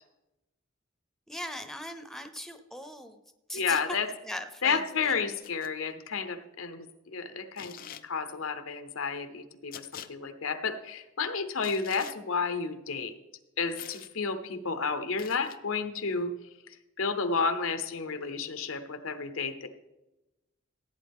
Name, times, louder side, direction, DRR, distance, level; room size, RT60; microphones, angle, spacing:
voice 1, 1.3-3.2 3.5-4.0 4.2-5.2, left 1 dB, ahead, 7 dB, 0.7 m, -39 dB
voice 2, 3.5-4.1 4.6-13.1 13.6-16.3 17.0-19.7, left 5 dB, 85° left, 9 dB, 0.9 m, -31 dB
sound 1, 5.4-5.7 7.6-8.1 9.7-10.1 11.6-12.2 13.7-14.1 15.2-15.6, left 9 dB, 45° left, 0.5 m, -45 dB
16.0 x 8.5 x 3.6 m, 0.97 s
head